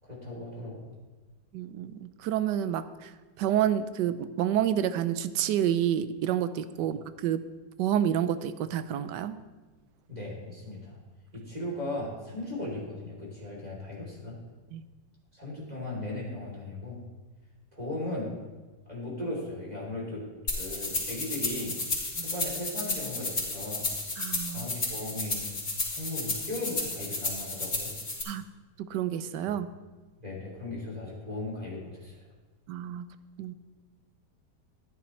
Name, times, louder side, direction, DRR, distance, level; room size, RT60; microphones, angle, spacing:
voice 1, 0.0-0.9 10.1-11.0 11.3-14.3 15.3-17.0 17.7-18.3 18.9-20.2 20.6-21.8 22.2-23.9 24.5-25.5 25.8-27.9 30.2-32.3, left 1 dB, 20° right, -4 dB, 3.4 m, -37 dB
voice 2, 1.5-3.1 3.4-7.4 7.8-9.4 14.7-14.8 22.2-22.3 24.2-24.7 28.2-28.5 28.8-29.7 32.7-33.1 33.4-33.5, right 10 dB, 80° right, 13 dB, 1.2 m, -29 dB
sound 1, 20.5-28.2, left 2 dB, 65° left, 3.9 m, -32 dB
14.0 x 11.0 x 3.2 m, 1.3 s
omnidirectional pair, 1.9 m